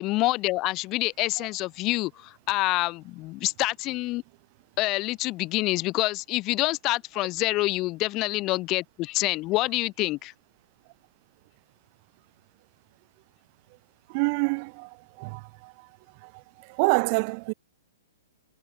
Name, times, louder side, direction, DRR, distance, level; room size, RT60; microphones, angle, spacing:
voice 1, 0.0-4.2 4.8-10.3, left 20 dB, 35° left, 0.9 m, -27 dB
voice 2, 14.1-15.9 16.2-17.5, right 33 dB, 45° right, 2.5 m, -28 dB
hypercardioid pair, 125°, 0 cm